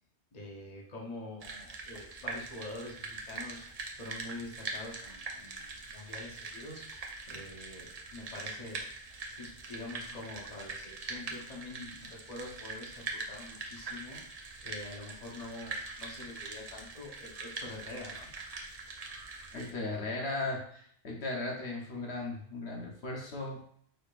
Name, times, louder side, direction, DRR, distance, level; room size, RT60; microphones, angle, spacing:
voice 1, 0.3-3.7 4.0-8.9 9.4-18.3, left 2 dB, 35° left, -3 dB, 1.0 m, -46 dB
sound 1, 1.4-19.7, right 3 dB, 45° right, 0.6 m, -43 dB
voice 2, 19.5-23.6, left 2 dB, 70° left, -1 dB, 1.2 m, -37 dB
5.0 x 4.3 x 2.4 m, 0.64 s
omnidirectional pair, 1.1 m